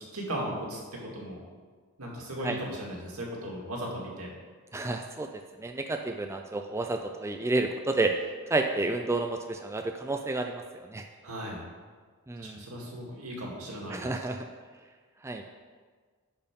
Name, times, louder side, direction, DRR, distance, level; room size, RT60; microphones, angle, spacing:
voice 1, 0.1-1.4 2.0-4.3 11.2-11.6 12.4-14.1, equal, 75° right, -2 dB, 2.1 m, -37 dB
voice 2, 4.7-5.3 5.6-8.1 8.5-10.6 10.9-11.0 12.3-12.6 13.9-14.4 15.2-15.4, right 2 dB, 10° right, 4 dB, 0.3 m, -30 dB
10.5 x 4.5 x 5.2 m, 1.5 s
head